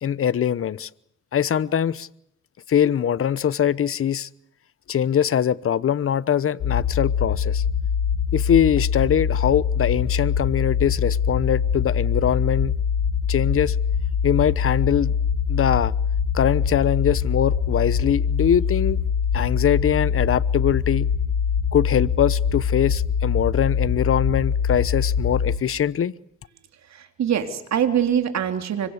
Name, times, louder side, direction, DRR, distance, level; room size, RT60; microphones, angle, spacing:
voice 1, 0.0-0.9 1.3-2.1 2.7-4.3 4.9-7.6 8.3-12.7 13.3-13.8 14.2-15.1 15.5-15.9 16.3-19.0 19.3-21.1 21.7-26.1, left 9 dB, 45° left, 18 dB, 1.0 m, -22 dB
sound 1, 6.6-25.6, left 7 dB, 75° left, 2.1 m, -23 dB
voice 2, 26.9-28.9, right 9 dB, 60° right, 7 dB, 3.5 m, -23 dB
25.5 x 23.5 x 8.2 m, 0.71 s
cardioid pair, 90°, 30 cm